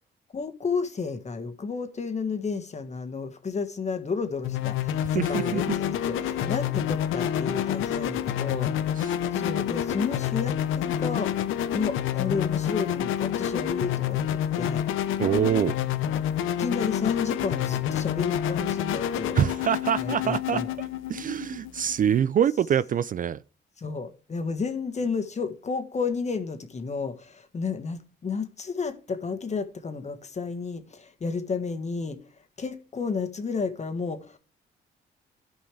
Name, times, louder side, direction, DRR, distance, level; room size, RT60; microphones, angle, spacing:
voice 1, 0.3-8.7 9.3-11.4 11.7-14.8 16.5-19.4 20.0-20.7 23.8-32.2 32.6-34.4, left 5 dB, 35° left, 1.5 m, -32 dB
sound 1, 4.4-22.2, left 10 dB, 85° left, 0.8 m, -28 dB
voice 2, 5.1-5.6 9.0-9.1 15.2-15.7 19.3-20.6 21.1-23.4, right 9 dB, 45° right, 0.4 m, -25 dB
14.5 x 5.5 x 3.3 m
cardioid pair, 90°, 20 cm